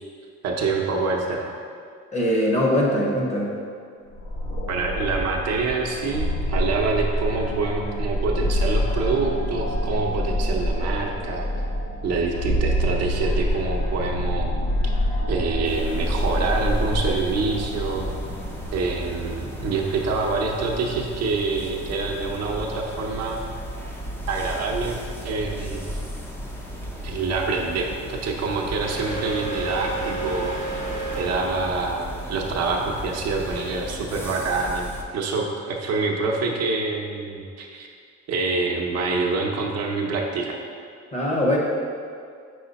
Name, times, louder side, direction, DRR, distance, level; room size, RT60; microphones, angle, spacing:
voice 1, 0.4-1.5 4.7-11.5 12.0-14.5 14.8-14.9 15.3-18.1 18.7-23.4 24.3-26.0 27.0-30.8 31.2-37.9 38.3-40.6, right 3 dB, 60° right, 1 dB, 0.7 m, -26 dB
voice 2, 2.1-3.5 41.1-41.6, left 1 dB, 25° left, -2 dB, 0.8 m, -21 dB
sound 1, 4.1-18.7, equal, 90° left, 1.2 m, -26 dB
sound 2, 15.6-35.0, equal, 10° left, 0.5 m, -35 dB
sound 3, 28.8-35.4, right 2 dB, 60° left, 1.2 m, -33 dB
4.9 x 4.8 x 4.0 m, 2.2 s
cardioid pair, 155°, 29 cm